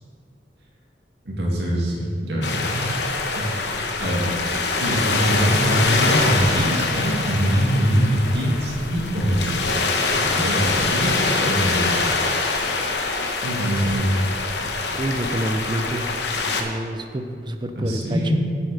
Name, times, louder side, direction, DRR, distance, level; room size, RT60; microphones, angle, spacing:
voice 1, 1.3-3.0 4.0-4.2 4.8-12.1 13.4-14.2 17.7-18.3, equal, 70° right, -4 dB, 2.2 m, -23 dB
sound 1, 2.4-16.6, left 3 dB, 75° left, 0.9 m, -24 dB
voice 2, 14.9-16.1 16.5-18.3, right 1 dB, 25° right, 7 dB, 0.6 m, -28 dB
8.2 x 7.8 x 4.9 m, 2.5 s
head